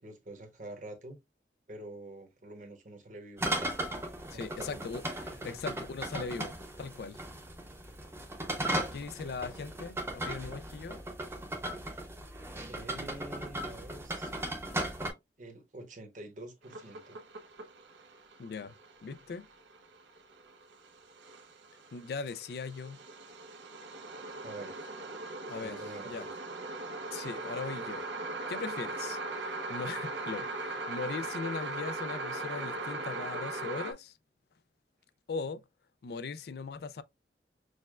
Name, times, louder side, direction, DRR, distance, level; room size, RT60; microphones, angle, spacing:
voice 1, 0.0-1.2 1.7-3.5 4.3-4.9 5.4-5.6 9.4-9.7 12.7-14.5 15.4-17.2 24.4-24.8 25.6-26.3, right 2 dB, 45° right, 0.9 m, -46 dB
sound 1, 3.4-15.1, right 1 dB, 15° right, 0.7 m, -37 dB
voice 2, 4.3-7.2 8.9-11.0 18.4-18.7 19.0-19.5 21.9-23.0 25.5-25.8 26.0-26.3 27.1-28.1 28.5-34.2 35.3-35.6 36.0-37.0, left 4 dB, 60° left, 0.3 m, -39 dB
sound 2, 16.6-33.9, right 2 dB, 85° right, 0.7 m, -40 dB
6.3 x 2.2 x 2.3 m
head